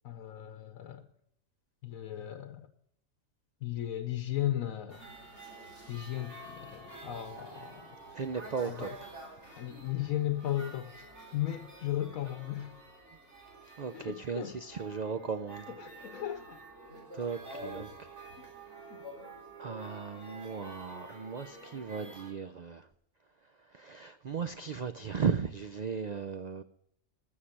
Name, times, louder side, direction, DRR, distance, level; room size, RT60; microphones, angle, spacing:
voice 1, 0.0-1.1 1.8-2.7 3.6-5.0 5.9-8.0 8.6-9.0 9.6-11.1 11.3-12.7 13.9-14.6 15.7-16.6 18.4-18.5 18.9-19.0, left 12 dB, 80° left, 9 dB, 1.2 m, -36 dB
sound 1, 4.9-22.3, right 2 dB, 55° right, 4.1 m, -49 dB
voice 2, 8.1-9.1 13.8-15.7 17.1-18.2 19.6-22.9 23.4-26.6, right 6 dB, 75° right, 10 dB, 0.4 m, -36 dB
14.5 x 6.7 x 7.2 m, 0.74 s
omnidirectional pair, 1.4 m